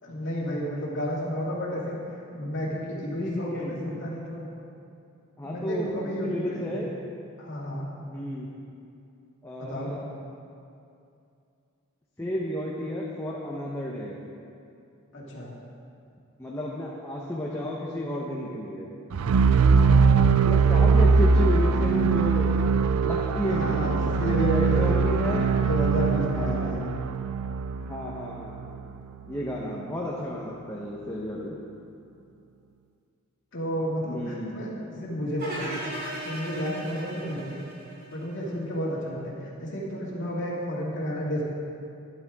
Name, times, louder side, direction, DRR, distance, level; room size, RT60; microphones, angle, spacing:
voice 1, 0.0-2.0 2.3-4.5 5.4-6.8 7.4-7.9 9.6-9.9 15.1-15.5 19.6-20.2 23.5-24.9 25.5-26.9 33.5-35.8 36.2-37.5 38.1-41.5, equal, 60° left, -4 dB, 2.4 m, -31 dB
voice 2, 3.0-3.8 5.4-6.9 8.0-8.5 9.4-10.1 12.2-14.2 16.4-18.9 20.3-22.5 23.0-25.6 26.3-26.8 27.8-28.7 29.2-31.6 34.1-34.6, equal, 10° left, -5 dB, 1.0 m, -32 dB
sound 1, 19.1-29.1, right 5 dB, 85° right, 0.4 m, -22 dB
sound 2, 35.4-38.5, right 1 dB, 45° right, 3.2 m, -36 dB
12.5 x 11.0 x 3.6 m, 2.5 s
head